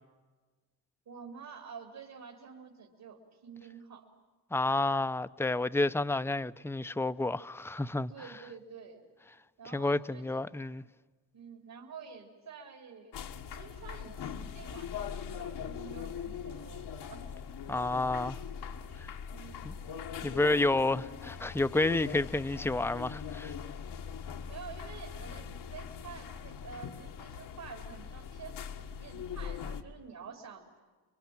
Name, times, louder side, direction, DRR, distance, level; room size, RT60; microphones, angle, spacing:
voice 1, 1.1-4.1 8.1-9.1 9.6-10.4 11.3-13.2 13.5-17.3 19.3-19.7 24.5-30.8, right 6 dB, 60° right, 3.8 m, -49 dB
voice 2, 4.5-8.1 9.7-10.8 17.7-18.4 19.6-19.7 20.2-23.5, left 2 dB, 5° left, 0.8 m, -30 dB
sound 1, 13.1-29.8, left 7 dB, 80° left, 1.7 m, -41 dB
26.5 x 24.0 x 9.0 m
supercardioid pair, 65°, 40 cm